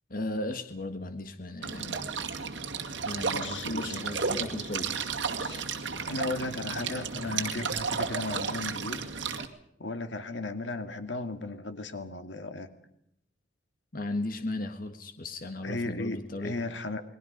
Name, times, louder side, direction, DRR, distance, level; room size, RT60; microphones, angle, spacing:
voice 1, 0.1-2.0 3.0-4.9 13.9-16.7, left 2 dB, 50° left, 7 dB, 1.8 m, -36 dB
sound 1, 1.6-9.4, right 5 dB, 75° right, 2.3 m, -33 dB
voice 2, 3.2-4.0 4.6-4.7 5.4-5.6 6.1-9.0 9.8-12.7 15.6-17.0, left 2 dB, 75° left, 8 dB, 2.1 m, -35 dB
28.5 x 21.5 x 5.4 m, 0.76 s
head